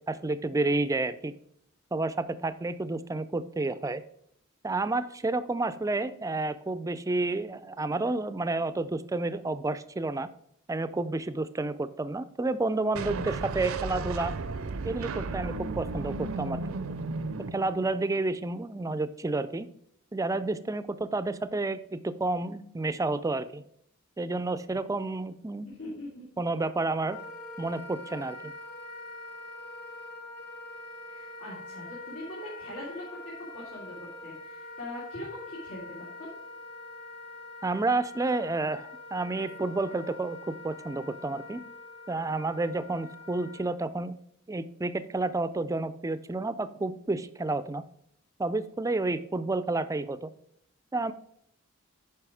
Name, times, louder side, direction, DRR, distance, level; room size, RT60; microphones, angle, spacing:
voice 1, 0.1-1.3 1.9-4.0 4.6-10.3 10.7-14.3 14.8-16.6 17.5-19.7 20.1-23.6 24.2-25.7 26.4-27.2 27.6-28.5 37.6-41.6 42.1-44.2 44.5-47.8 48.4-50.3 50.9-51.1, right 2 dB, 15° right, 14 dB, 0.4 m, -30 dB
sound 1, 12.9-18.1, right 3 dB, 65° right, 0.5 m, -34 dB
voice 2, 25.6-26.2 31.1-33.0 33.5-33.9 34.2-36.3, left 1 dB, 85° left, -8 dB, 3.0 m, -41 dB
Wind instrument woodwind instrument, 27.1-43.7, left 2 dB, 50° left, 2.1 m, -44 dB
9.1 x 5.4 x 4.9 m, 0.71 s
head